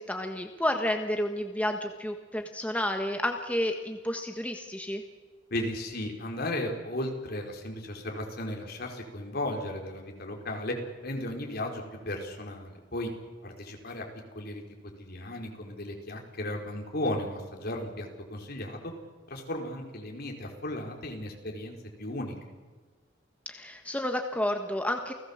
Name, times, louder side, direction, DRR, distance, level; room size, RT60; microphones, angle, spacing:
voice 1, 0.0-5.0 23.4-25.1, left 1 dB, 5° left, 4 dB, 1.4 m, -31 dB
voice 2, 5.5-13.1 13.4-14.1 14.3-14.6 15.0-18.9 19.3-22.3, left 1 dB, 55° left, 2 dB, 4.6 m, -35 dB
29.5 x 18.0 x 7.3 m, 1.4 s
head